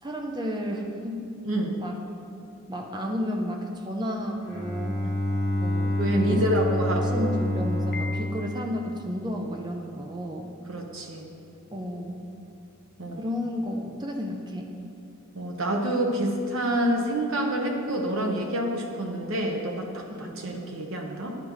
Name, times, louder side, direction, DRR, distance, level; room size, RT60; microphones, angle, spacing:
voice 1, 0.0-1.3 1.7-2.0 2.7-5.0 5.5-6.5 6.9-10.5 11.7-12.3 13.2-14.7 20.1-20.4, equal, 20° right, 1 dB, 0.5 m, -32 dB
voice 2, 1.4-1.7 6.0-7.3 10.7-11.3 13.0-13.2 15.3-21.4, right 1 dB, 70° right, 1 dB, 1.0 m, -27 dB
Bowed string instrument, 4.4-9.7, left 1 dB, 20° left, 1.4 m, -28 dB
Piano, 7.9-9.0, left 4 dB, 45° left, 0.4 m, -40 dB
11.0 x 5.1 x 3.1 m, 2.6 s
head